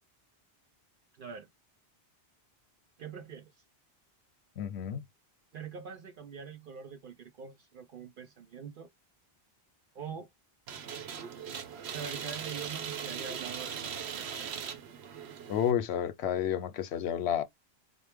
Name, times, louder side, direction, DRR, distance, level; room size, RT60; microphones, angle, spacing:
voice 1, 1.2-1.5 3.0-3.6 5.5-8.9 9.9-10.3 11.9-14.5, right 6 dB, 60° right, 0.7 m, -44 dB
voice 2, 4.6-5.1 15.5-17.4, left 9 dB, 90° left, 0.9 m, -30 dB
sound 1, 10.7-15.7, right 7 dB, 80° right, 1.0 m, -39 dB
4.4 x 2.0 x 3.3 m
omnidirectional pair, 1.1 m